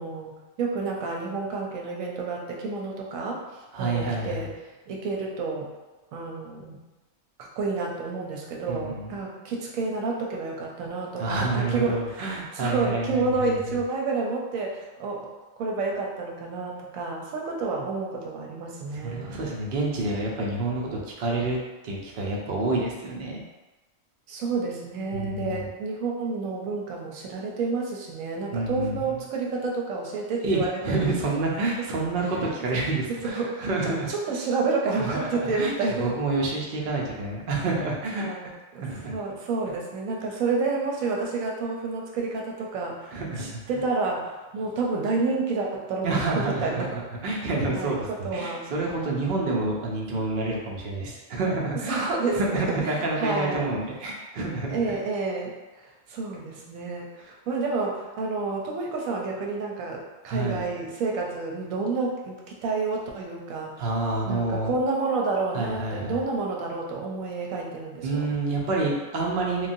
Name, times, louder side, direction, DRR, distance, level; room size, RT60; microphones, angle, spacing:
voice 1, 0.0-4.5 4.9-5.7 6.1-6.8 7.4-15.3 15.6-19.3 24.3-31.0 33.3-36.1 38.1-38.5 38.7-46.9 47.7-48.6 51.9-53.6 54.7-63.8 64.3-68.3, right 3 dB, 85° right, -1 dB, 1.0 m, -29 dB
voice 2, 3.7-4.5 8.7-9.1 11.2-13.5 18.9-21.6 21.8-23.4 25.1-25.7 28.5-29.2 30.4-34.1 35.0-35.7 36.0-39.1 43.1-43.6 46.0-52.0 52.3-55.0 60.3-60.6 63.8-64.8 65.5-66.2 68.0-69.7, right 2 dB, 60° right, -2 dB, 0.6 m, -28 dB
3.1 x 2.3 x 2.5 m, 1.1 s
omnidirectional pair, 1.4 m